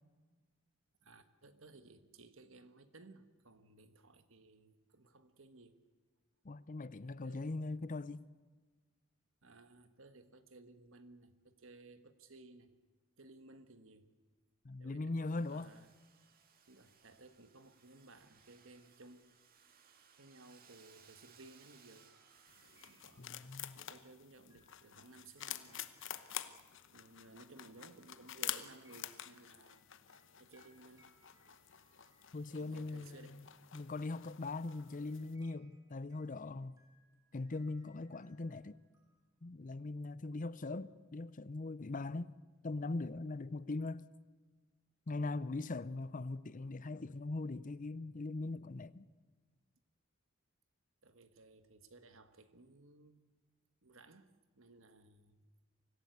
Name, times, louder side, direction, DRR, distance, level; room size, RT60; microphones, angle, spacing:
voice 1, 1.0-5.8 7.2-7.6 9.4-12.8 13.2-14.1 14.8-15.9 16.7-19.4 20.2-22.1 22.8-25.9 26.9-29.8 30.4-31.1 32.5-33.6 51.0-53.2 53.8-55.4, right 2 dB, 70° right, 1.5 m, -59 dB
voice 2, 6.4-8.2 14.6-15.7 23.2-23.8 32.3-36.8 37.3-38.8 39.4-42.4 42.6-44.1 45.1-49.1, left 2 dB, 40° left, 0.6 m, -41 dB
Domestic sounds home sounds, 15.2-23.4, right 6 dB, 45° right, 2.1 m, -65 dB
sound 1, 21.4-33.3 33.9-39.2, right 1 dB, 20° right, 6.1 m, -74 dB
sound 2, 22.5-35.3, left 12 dB, 65° left, 1.0 m, -48 dB
24.5 x 16.0 x 8.2 m
head